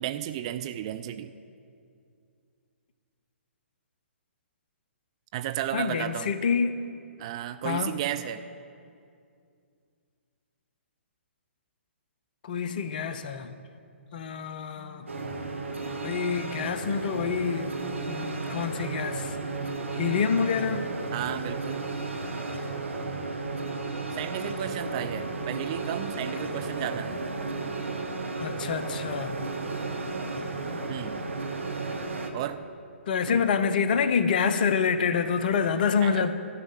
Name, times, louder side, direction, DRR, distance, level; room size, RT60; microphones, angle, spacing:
voice 1, 0.0-1.3 5.3-6.3 7.2-8.4 21.1-21.9 24.1-27.1 30.9-31.3 32.3-32.6 33.3-33.5 36.0-36.3, right 11 dB, 30° right, 10 dB, 0.3 m, -33 dB
voice 2, 5.7-6.8 7.6-7.9 12.4-13.5 14.1-15.1 16.0-17.7 18.1-19.3 19.9-20.9 28.4-29.4 33.1-36.3, left 6 dB, 40° left, 11 dB, 0.6 m, -27 dB
sound 1, 14.8-31.6, left 6 dB, ahead, 1.2 m, -51 dB
sound 2, 15.1-32.3, right 3 dB, 70° right, 1.2 m, -33 dB
12.5 x 5.3 x 8.9 m, 2.4 s
figure-of-eight pair, 125°, 7 cm